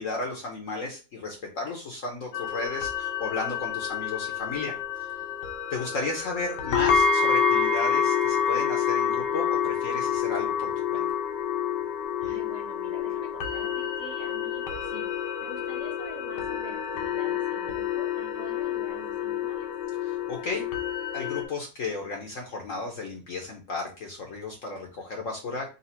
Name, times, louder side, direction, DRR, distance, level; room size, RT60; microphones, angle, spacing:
voice 1, 0.0-5.2 5.7-11.1 20.1-20.6 21.1-25.7, left 3 dB, 55° left, 1 dB, 1.0 m, -34 dB
sound 1, 2.3-21.4, left 7 dB, 75° left, 1.3 m, -28 dB
voice 2, 12.2-15.1 15.4-19.7, right 1 dB, 50° right, -1 dB, 1.6 m, -45 dB
4.1 x 2.4 x 4.2 m, 0.32 s
omnidirectional pair, 1.9 m